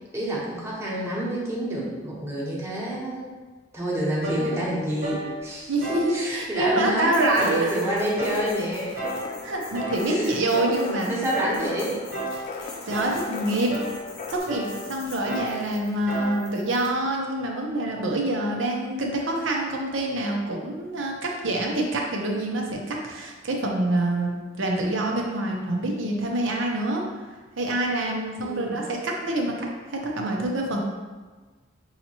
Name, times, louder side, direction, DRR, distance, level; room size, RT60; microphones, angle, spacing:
voice 1, 0.1-3.3 3.7-5.7 6.1-9.1 10.1-10.3 11.1-12.0 28.4-28.8, right 1 dB, 15° right, -6 dB, 1.0 m, -28 dB
sound 1, 4.2-4.5 5.0-5.3 5.8-6.1 6.6-6.9 7.4-7.7 8.2-8.5 9.0-9.2 9.7-10.0 10.5-10.8 11.3-11.6 12.1-12.4 12.9-13.2 13.7-14.0 14.5-14.8 15.3-15.6 16.1-16.4, right 1 dB, 50° right, 1.0 m, -31 dB
voice 2, 5.7-8.0 9.4-11.1 12.9-13.7 14.3-24.3 24.6-27.0 27.6-29.5 29.9-30.8, right 1 dB, 75° right, 0 dB, 0.7 m, -26 dB
sound 2, 7.1-16.9, left 3 dB, 80° left, 1.1 m, -46 dB
sound 3, 7.5-14.4, left 4 dB, 35° left, 0.4 m, -39 dB
5.7 x 2.8 x 2.9 m, 1.3 s
head